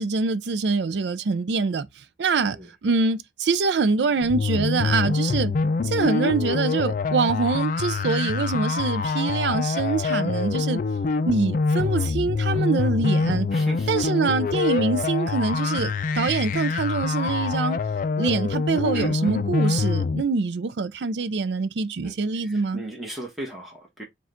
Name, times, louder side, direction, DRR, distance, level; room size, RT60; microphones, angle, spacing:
voice 1, 0.0-2.6 2.8-5.5 5.8-10.8 11.3-13.5 13.9-17.8 18.2-22.8, right 4 dB, 75° right, 0.4 m, -25 dB
sound 1, 4.2-20.2, left 4 dB, 50° left, 0.4 m, -25 dB
voice 2, 13.5-14.1 18.9-19.3 22.0-22.2 22.4-24.0, right 1 dB, ahead, 1.2 m, -37 dB
4.8 x 2.4 x 3.7 m
head